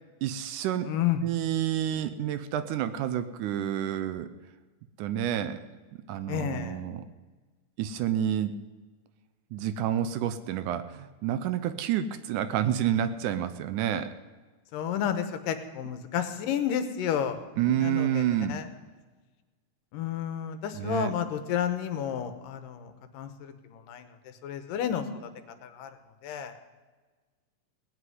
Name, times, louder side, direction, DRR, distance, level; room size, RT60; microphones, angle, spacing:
voice 1, 0.2-0.9 1.2-4.3 5.0-5.6 6.1-7.0 7.8-8.6 9.5-14.2 17.6-18.6 20.7-21.1, right 10 dB, 75° right, 12 dB, 2.0 m, -29 dB
voice 2, 0.9-1.2 6.3-6.8 14.7-17.4 17.8-18.7 19.9-24.1 24.4-25.3 25.6-25.9 26.2-26.5, left 9 dB, 85° left, 9 dB, 2.6 m, -31 dB
18.0 x 6.4 x 9.3 m, 1.3 s
omnidirectional pair, 3.8 m